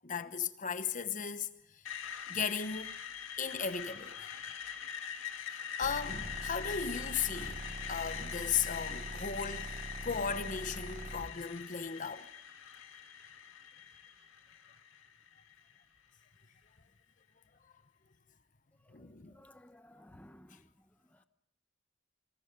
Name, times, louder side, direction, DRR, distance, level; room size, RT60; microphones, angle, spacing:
voice 1, 0.0-1.8 2.3-3.0 3.4-4.4 5.4-7.6 7.9-12.3 18.9-19.4, left 6 dB, 40° left, 1.0 m, -36 dB
Screech, 1.9-15.8, left 8 dB, 90° left, 2.2 m, -43 dB
sound 1, 5.8-11.4, right 2 dB, 40° right, 1.1 m, -44 dB
voice 2, 18.9-20.7 21.1-21.2, left 1 dB, 10° left, 1.1 m, -58 dB
27.0 x 26.5 x 5.4 m
head